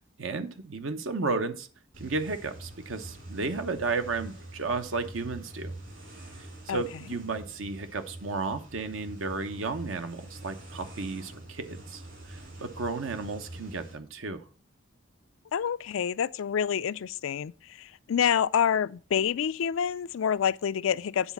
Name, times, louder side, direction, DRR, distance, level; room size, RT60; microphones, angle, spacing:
voice 1, 0.2-1.7 2.0-5.7 6.7-12.0 12.3-14.4, right 3 dB, 80° right, 1.0 m, -33 dB
sound 1, 1.9-13.9, right 1 dB, 65° right, 3.8 m, -45 dB
voice 2, 15.5-17.5 17.8-21.3, left 8 dB, 80° left, 0.4 m, -27 dB
9.8 x 4.1 x 7.1 m
head